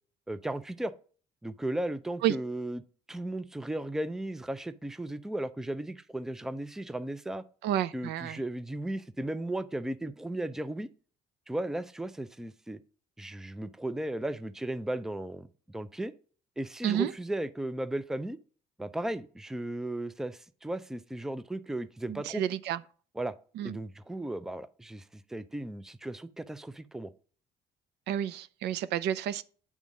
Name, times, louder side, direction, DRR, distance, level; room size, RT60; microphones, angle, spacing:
voice 1, 0.3-0.9 1.4-2.8 3.1-7.4 7.9-10.9 11.5-12.8 13.2-16.1 16.6-18.4 18.8-22.4 23.2-23.3 23.6-27.1, right 1 dB, 5° right, 0.4 m, -35 dB
voice 2, 7.6-8.4 16.8-17.1 22.1-22.8 23.6-23.8 28.1-29.4, right 11 dB, 80° right, 0.5 m, -30 dB
8.5 x 3.6 x 5.2 m
cardioid pair, 110°, 17 cm